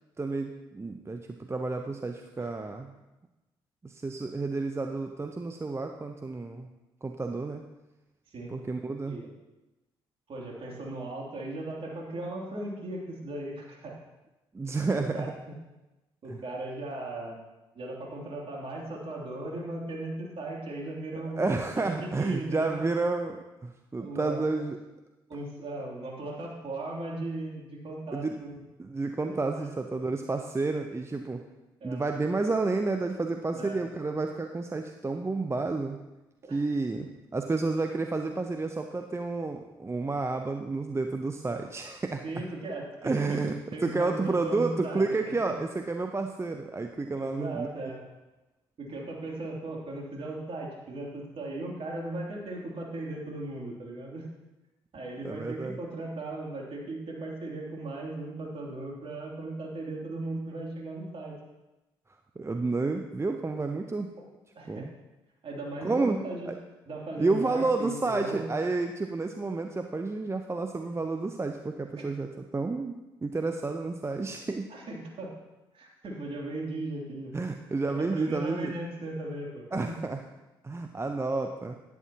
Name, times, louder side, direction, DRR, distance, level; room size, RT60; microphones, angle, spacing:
voice 1, 0.2-2.9 3.8-6.7 7.0-7.7 8.5-9.2 14.5-15.3 16.3-16.4 21.1-24.8 28.1-28.4 28.8-31.4 31.8-36.0 36.5-42.2 43.0-47.7 55.2-55.8 62.4-64.1 64.6-64.9 65.8-66.2 66.5-66.6 67.2-74.7 77.3-78.7 79.7-80.2 80.6-81.7, right 3 dB, 20° right, 5 dB, 0.7 m, -30 dB
voice 2, 10.3-13.9 14.9-15.6 16.2-17.4 17.7-22.9 24.0-24.4 25.3-28.6 29.5-29.7 31.8-32.0 33.5-33.8 36.4-36.6 42.2-45.1 47.1-48.0 48.8-54.3 54.9-61.4 64.5-64.9 65.4-66.6 66.9-68.5 74.7-75.4 75.7-77.3 77.9-80.0, right 2 dB, 50° right, -2 dB, 2.9 m, -37 dB
11.0 x 11.0 x 2.9 m, 1.0 s
hypercardioid pair, 45°, 12 cm